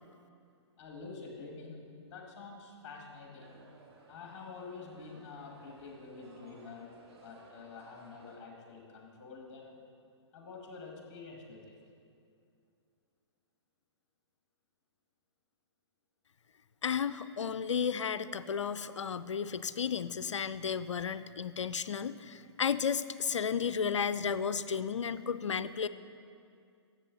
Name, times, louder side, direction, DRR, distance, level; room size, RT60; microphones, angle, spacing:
voice 1, 0.8-3.6 4.1-9.8 10.3-11.8, left 4 dB, 40° left, 1 dB, 2.0 m, -48 dB
sound 1, 3.4-8.4, right 3 dB, 60° right, 1.9 m, -59 dB
voice 2, 16.8-25.9, left 7 dB, 80° left, 14 dB, 0.4 m, -33 dB
12.5 x 7.9 x 4.0 m, 2.4 s
figure-of-eight pair, 125°, 15 cm